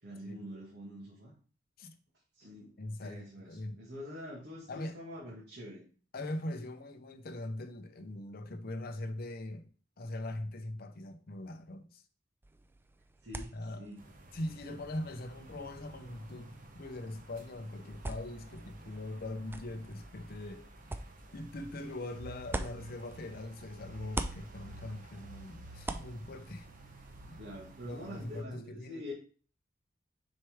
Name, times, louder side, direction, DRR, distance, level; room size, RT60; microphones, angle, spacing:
voice 1, 0.0-1.3 2.4-2.7 3.0-5.8 13.2-14.1 27.4-29.1, left 1 dB, 60° right, 1.8 m, -45 dB
voice 2, 2.8-3.8 4.7-5.0 6.1-9.7 10.0-12.0 13.5-13.9 14.3-20.7 21.3-26.7 27.2-27.4 27.8-29.0, left 1 dB, 55° left, 0.7 m, -41 dB
sound 1, 12.4-23.6 23.9-27.3, right 2 dB, 10° right, 0.3 m, -45 dB
sound 2, 14.0-28.4, right 2 dB, 45° right, 0.9 m, -52 dB
6.5 x 4.5 x 3.5 m
head